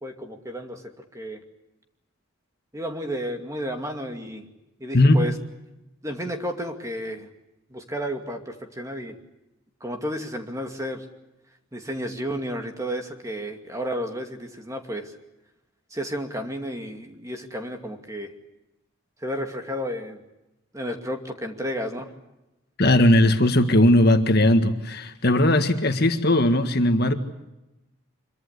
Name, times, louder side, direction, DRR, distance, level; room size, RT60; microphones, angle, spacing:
voice 1, 0.0-1.4 2.7-4.5 4.8-5.3 6.0-7.3 7.7-9.2 9.8-11.0 11.7-15.1 15.9-18.3 19.2-20.2 20.7-22.1, equal, 15° right, 4 dB, 2.4 m, -32 dB
voice 2, 4.9-5.3 22.8-27.1, left 1 dB, 45° left, 7 dB, 1.8 m, -18 dB
26.0 x 23.5 x 8.3 m, 0.95 s
head